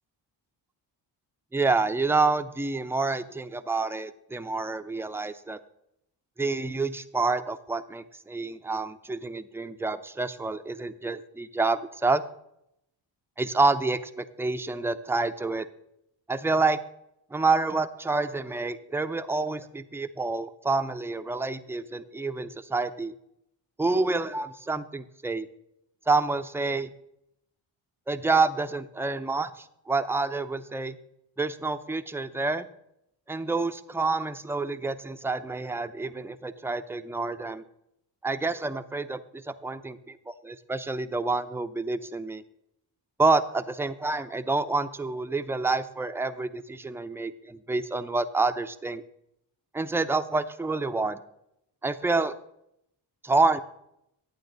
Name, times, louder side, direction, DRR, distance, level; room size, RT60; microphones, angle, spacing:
voice 1, 1.5-5.6 6.4-12.2 13.4-15.7 16.3-16.8 17.3-23.1 23.8-25.5 26.1-26.9 28.1-31.0 31.4-32.7 33.3-37.6 38.2-42.4 43.2-49.0 49.7-51.2 51.8-52.4 53.2-53.6, right 3 dB, 5° right, 9 dB, 0.6 m, -28 dB
11.5 x 8.7 x 3.9 m, 0.79 s
supercardioid pair, 50°, 48 cm